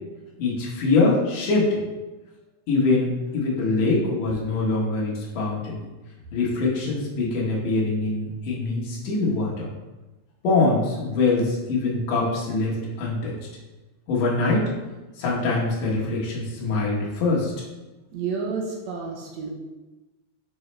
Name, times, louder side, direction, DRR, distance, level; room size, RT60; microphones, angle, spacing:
voice 1, 0.4-1.8 2.7-5.8 6.3-9.7 10.4-13.3 14.1-14.7 15.2-17.5, left 3 dB, 75° left, -4 dB, 2.8 m, -23 dB
voice 2, 18.1-19.5, right 5 dB, 75° right, -1 dB, 1.7 m, -30 dB
7.1 x 4.1 x 3.3 m, 1.1 s
omnidirectional pair, 3.8 m